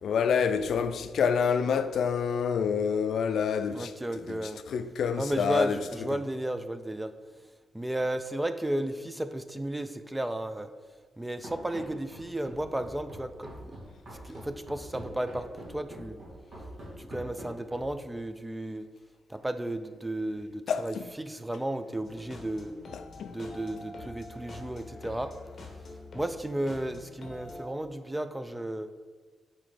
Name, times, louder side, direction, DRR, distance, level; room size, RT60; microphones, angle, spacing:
voice 1, 0.0-4.4 4.7-5.8 20.7-21.0 22.9-23.3, left 6 dB, 70° left, 0.4 m, -27 dB
voice 2, 3.7-4.6 5.2-7.1 7.7-10.7 11.2-13.8 14.2-16.2 17.0-18.9 19.3-22.7 23.3-25.3 26.1-28.9, right 1 dB, 10° right, 0.3 m, -33 dB
Run, 11.4-18.1, equal, 50° right, 2.0 m, -44 dB
sound 1, 22.0-27.6, left 2 dB, 45° left, 1.1 m, -45 dB
5.9 x 4.3 x 4.8 m
wide cardioid pair, 130°, 0 cm